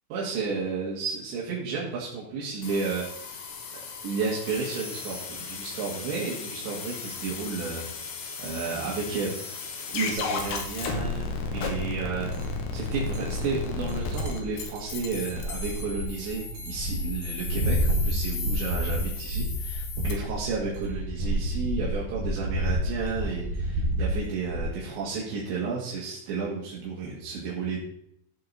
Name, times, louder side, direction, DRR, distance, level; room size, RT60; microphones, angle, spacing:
voice 1, 0.1-3.1 4.0-7.9 8.4-9.3 9.9-12.3 12.7-27.8, right 4 dB, 80° right, -5 dB, 4.3 m, -32 dB
sound 1, 2.6-20.1, left 4 dB, 70° left, 3.6 m, -35 dB
sound 2, 12.3-12.5 12.8-24.6, equal, 55° right, 2.8 m, -30 dB
14.5 x 7.8 x 4.1 m, 0.71 s
omnidirectional pair, 5.1 m